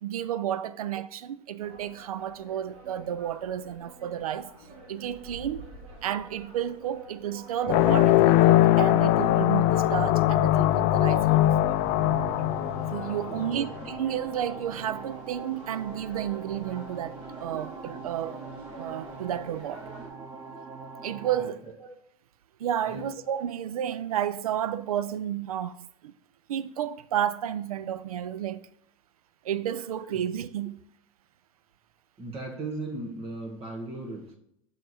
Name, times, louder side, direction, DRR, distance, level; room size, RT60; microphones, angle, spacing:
voice 1, 0.0-4.5 4.9-5.7 6.0-11.8 12.9-18.4 18.7-19.8 21.0-21.7 22.6-26.1 26.5-28.6 29.4-30.8, right 10 dB, 90° right, 0.4 m, -31 dB
sound 1, 1.6-20.1, right 2 dB, 65° right, 2.5 m, -47 dB
sound 2, 7.7-13.8, left 14 dB, 50° left, 0.4 m, -21 dB
sound 3, 11.5-21.5, right 4 dB, 15° right, 0.7 m, -43 dB
voice 2, 13.3-13.7 21.4-21.9 22.8-23.1 32.2-34.4, right 2 dB, 30° right, 1.4 m, -37 dB
6.3 x 4.5 x 4.1 m
hypercardioid pair, 100°, 18 cm